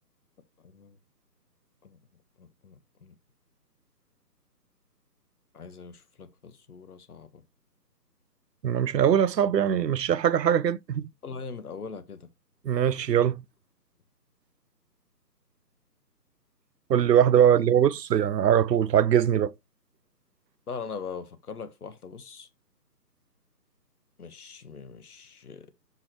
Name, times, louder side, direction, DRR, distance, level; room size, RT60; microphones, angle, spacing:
voice 1, 0.6-1.0 1.8-2.0 2.4-3.2 5.5-7.4 11.2-12.3 17.5-17.7 20.7-22.5 24.2-25.7, left 5 dB, 60° left, 1.3 m, -41 dB
voice 2, 8.6-11.1 12.6-13.4 16.9-19.5, right 9 dB, 75° right, 0.6 m, -22 dB
8.0 x 5.6 x 3.1 m
figure-of-eight pair, 155°, 50 cm